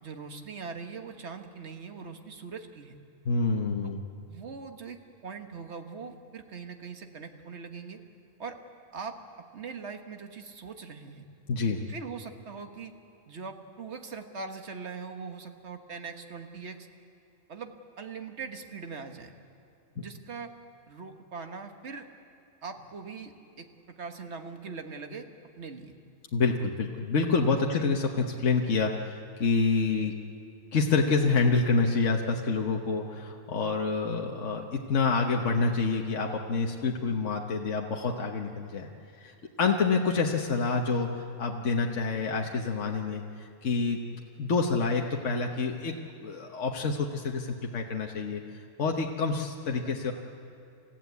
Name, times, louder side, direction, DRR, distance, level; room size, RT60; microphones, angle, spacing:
voice 1, 0.0-3.0 3.8-3.9 4.2-5.0 5.2-8.0 8.4-8.6 8.9-9.2 9.5-11.2 11.9-12.9 13.3-16.9 17.5-19.3 19.9-20.5 20.9-22.0 22.6-23.7 24.0-25.3 25.5-25.9, right 5 dB, 60° right, 5 dB, 1.7 m, -41 dB
voice 2, 3.2-4.0 11.5-11.8 20.0-20.1 26.3-30.1 30.7-38.9 39.2-43.2 43.6-45.9 46.2-48.4 48.8-50.1, left 4 dB, 70° left, 1 dB, 1.5 m, -27 dB
29.0 x 15.5 x 8.3 m, 2.6 s
omnidirectional pair, 1.3 m